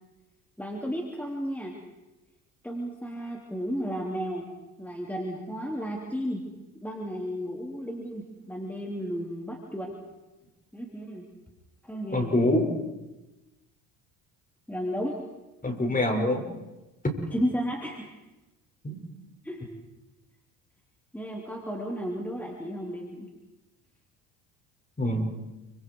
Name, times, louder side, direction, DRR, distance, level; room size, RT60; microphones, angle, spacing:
voice 1, 0.6-1.8 2.6-4.5 4.8-6.5 6.7-9.9 10.7-11.3 11.8-12.4 14.7-15.2 17.3-18.1 19.4-19.7 21.1-23.3, equal, 5° left, 0 dB, 3.8 m, -33 dB
voice 2, 12.1-12.7 15.6-16.4 18.8-19.0 25.0-25.4, left 1 dB, 20° left, 3 dB, 6.5 m, -25 dB
29.5 x 26.0 x 4.9 m, 1.0 s
supercardioid pair, 80°, 38 cm